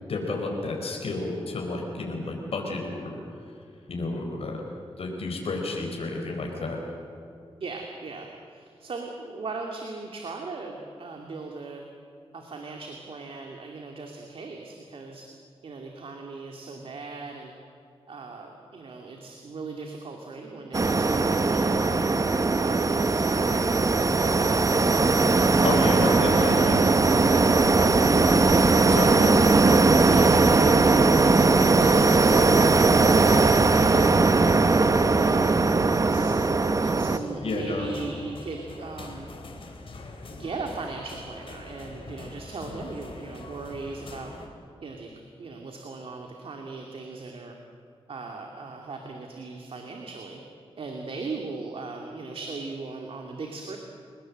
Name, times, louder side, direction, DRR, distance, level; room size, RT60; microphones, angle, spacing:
voice 1, 0.1-3.2 3.9-4.6 5.0-6.8 21.9-22.1 25.6-27.2 28.9-29.5 36.8-36.9 37.4-37.9 42.7-42.8, left 2 dB, 75° left, 1 dB, 4.6 m, -31 dB
voice 2, 7.6-11.8 12.3-15.3 15.6-17.5 18.1-22.1 22.6-24.7 25.1-26.8 30.0-34.6 36.1-36.4 36.7-39.3 40.3-44.3 44.8-45.1 45.4-47.6 48.1-50.4 50.8-53.8, right 3 dB, 65° right, 2 dB, 2.5 m, -38 dB
sound 1, 20.7-37.2, right 3 dB, 35° right, 1.0 m, -20 dB
sound 2, 37.2-44.5, left 3 dB, 60° left, 4.1 m, -43 dB
30.0 x 18.5 x 7.8 m, 2.5 s
wide cardioid pair, 95°, 10 cm